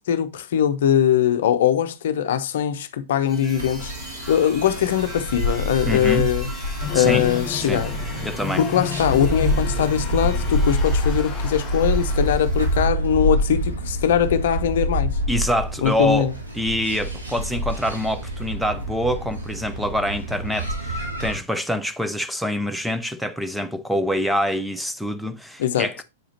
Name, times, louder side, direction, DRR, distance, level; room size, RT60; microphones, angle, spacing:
voice 1, 0.1-3.9 4.3-6.5 6.9-7.9 8.6-15.1 15.8-16.3 25.6-25.9, left 9 dB, 55° left, 0.7 m, -21 dB
sound 1, 3.2-12.9, right 1 dB, 20° right, 2.2 m, -41 dB
sound 2, 3.5-21.4, equal, 80° right, 2.5 m, -27 dB
voice 2, 5.9-6.3 6.9-7.2 7.6-7.8 8.2-8.6 15.3-16.3 16.5-26.0, equal, ahead, 0.6 m, -25 dB
sound 3, 6.8-12.3, left 6 dB, 30° left, 1.4 m, -32 dB
7.9 x 4.9 x 2.8 m
figure-of-eight pair, 100°, 0 cm